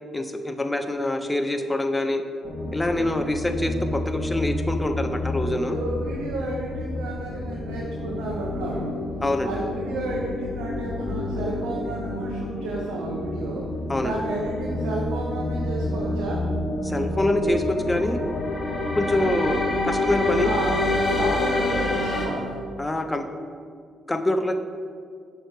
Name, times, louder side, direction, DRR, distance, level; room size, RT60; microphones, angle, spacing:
voice 1, 0.1-2.2 2.7-5.8 9.2-9.5 13.9-14.2 16.8-18.2 19.0-20.5 22.8-23.3 24.1-24.5, left 1 dB, 15° left, 7 dB, 0.5 m, -25 dB
sound 1, 2.4-22.3, left 2 dB, 40° left, 1.1 m, -28 dB
voice 2, 5.5-9.0 9.4-13.6 14.0-16.4 20.4-20.9 21.2-22.5, right 2 dB, 75° right, -3 dB, 0.7 m, -32 dB
6.0 x 3.2 x 5.0 m, 2.2 s
hypercardioid pair, 50°, 0 cm